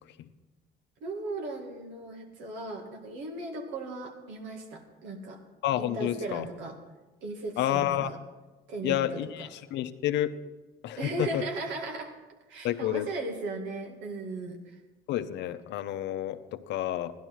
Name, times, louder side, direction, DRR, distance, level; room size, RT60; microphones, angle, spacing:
voice 1, 1.0-5.4 5.8-6.8 7.2-8.2 8.7-9.5 11.0-12.2 12.5-14.8, right 2 dB, 90° right, 2 dB, 2.0 m, -37 dB
voice 2, 5.6-6.5 7.6-8.1 8.8-10.3 10.8-11.4 12.6-13.1 15.1-17.1, left 12 dB, 75° left, 10 dB, 0.8 m, -30 dB
15.0 x 11.5 x 4.6 m, 1.2 s
cardioid pair, 90°, 18 cm